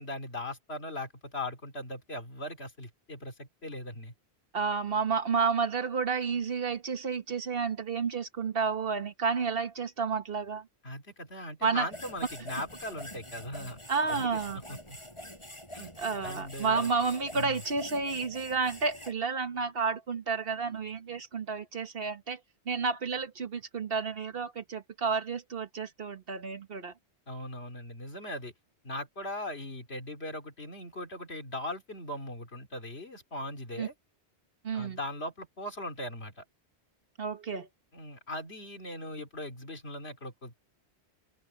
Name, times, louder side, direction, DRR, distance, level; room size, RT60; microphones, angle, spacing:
voice 1, 0.0-4.1 10.8-13.8 14.1-15.0 15.7-15.9 16.2-16.9 17.3-17.6 27.3-28.5 28.8-33.9 34.7-36.4 37.9-40.6, left 1 dB, 70° left, 3.4 m, -39 dB
voice 2, 4.5-10.7 11.6-11.9 13.9-14.6 16.0-22.4 22.6-26.9 33.8-33.9 34.6-35.0 37.2-37.7, right 5 dB, 60° right, 1.4 m, -31 dB
sound 1, 11.9-19.1, equal, 25° left, 8.1 m, -45 dB
open air
omnidirectional pair, 1.1 m